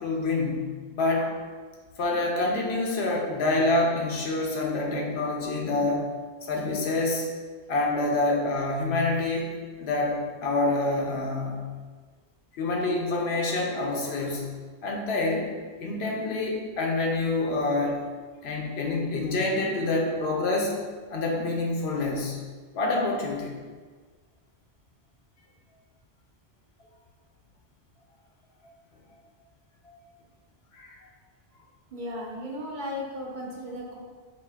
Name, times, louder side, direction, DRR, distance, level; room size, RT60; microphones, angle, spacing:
voice 1, 0.0-1.3 2.0-6.1 6.4-7.3 7.7-9.5 9.8-11.7 12.6-14.5 14.8-15.5 15.8-18.0 18.4-20.7 21.1-22.4 22.7-23.5 29.8-29.9 30.7-31.0, left 2 dB, 85° left, -1 dB, 0.9 m, -27 dB
voice 2, 31.9-34.0, left 1 dB, 55° right, -2 dB, 0.7 m, -35 dB
5.0 x 2.4 x 2.3 m, 1.5 s
omnidirectional pair, 1.0 m